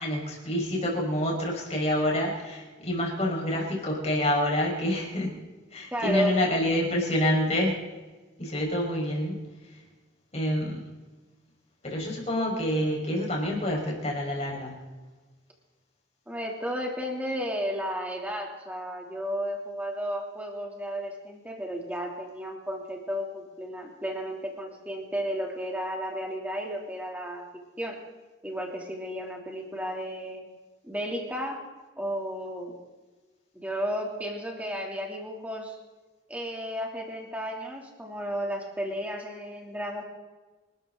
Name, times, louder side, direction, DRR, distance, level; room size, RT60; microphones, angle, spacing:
voice 1, 0.0-5.4 5.7-7.8 8.4-9.4 10.3-10.8 11.8-14.8, left 1 dB, 35° left, -2 dB, 5.1 m, -27 dB
voice 2, 5.9-6.5 16.3-28.0 28.4-30.4 30.8-31.6 32.0-32.7 33.5-35.8 36.3-40.0, equal, 10° right, 0 dB, 2.9 m, -33 dB
27.0 x 13.0 x 3.9 m, 1.2 s
head